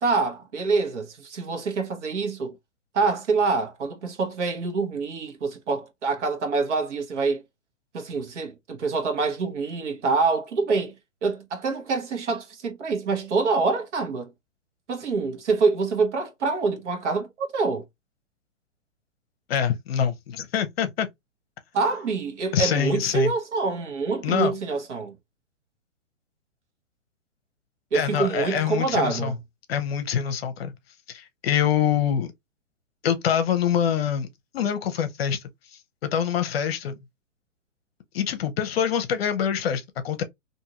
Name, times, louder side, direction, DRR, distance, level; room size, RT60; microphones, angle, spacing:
voice 1, 0.0-2.6 2.9-7.4 7.9-10.9 11.2-14.3 14.9-17.8 21.7-25.1 27.9-29.4, right 4 dB, 65° right, 1.2 m, -26 dB
voice 2, 19.5-21.1 22.5-23.3 24.2-24.5 27.9-29.3 29.7-30.7 31.1-32.3 33.0-34.3 34.5-35.4 36.0-37.0 38.1-40.2, left 8 dB, 50° left, 0.7 m, -25 dB
2.7 x 2.5 x 2.9 m
hypercardioid pair, 135°, 38 cm